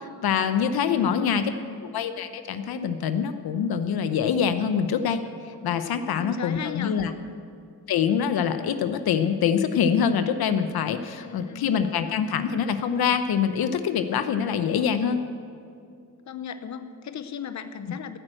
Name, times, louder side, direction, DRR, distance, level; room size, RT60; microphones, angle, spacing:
voice 1, 0.2-1.5 1.8-7.1 7.9-15.2, left 7 dB, 70° left, 9 dB, 0.8 m, -25 dB
voice 2, 0.9-1.5 6.2-7.0 11.2-11.7 16.3-18.2, left 8 dB, 45° left, 10 dB, 0.8 m, -36 dB
14.5 x 8.8 x 7.8 m, 2.4 s
cardioid pair, 105°, 38 cm